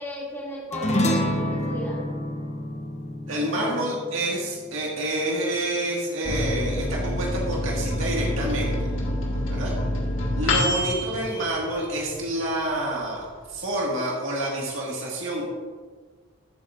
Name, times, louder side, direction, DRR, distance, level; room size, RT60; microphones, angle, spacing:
voice 1, 0.0-2.0 3.3-3.9, equal, 10° left, -7 dB, 2.6 m, -35 dB
sound 1, 0.7-5.4, left 1 dB, 30° left, 0.8 m, -28 dB
voice 2, 3.3-8.9 9.5-9.7 10.4-15.5, right 1 dB, 70° right, -3 dB, 1.9 m, -28 dB
Microwave oven, 6.2-12.3 12.7-12.8 13.1-13.7, left 1 dB, 70° left, 1.9 m, -27 dB
14.0 x 7.8 x 2.6 m, 1.5 s
head